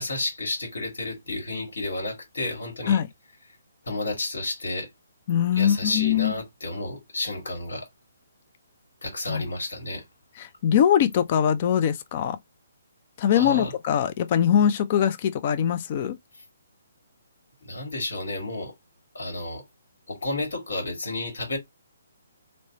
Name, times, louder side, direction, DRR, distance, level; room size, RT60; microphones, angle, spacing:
voice 1, 0.0-3.0 3.8-4.9 5.5-7.9 9.0-10.0 13.3-13.7 16.3-16.4 17.6-18.7 19.1-19.6 20.1-21.6, left 2 dB, 75° left, 1.3 m, -31 dB
voice 2, 5.3-6.3 9.3-9.4 10.4-12.4 13.2-16.2, left 9 dB, 40° left, 0.3 m, -22 dB
3.2 x 2.0 x 2.7 m
hypercardioid pair, 140°, 0 cm